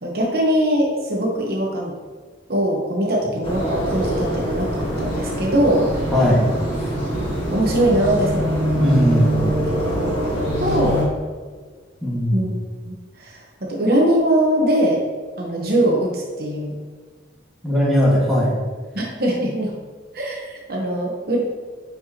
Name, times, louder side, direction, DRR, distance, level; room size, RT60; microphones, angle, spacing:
voice 1, 0.0-1.9 2.5-5.9 7.0-8.8 9.7-11.1 12.3-12.5 12.9-15.0 15.4-16.8 18.9-19.7 20.1-21.4, right 1 dB, 50° right, -2 dB, 1.1 m, -22 dB
sound 1, 3.4-11.0, equal, 30° left, 1.7 m, -24 dB
voice 2, 6.1-6.5 8.8-9.5 12.0-12.4 17.6-18.6, equal, ahead, -7 dB, 1.7 m, -18 dB
10.0 x 4.6 x 2.9 m, 1.5 s
head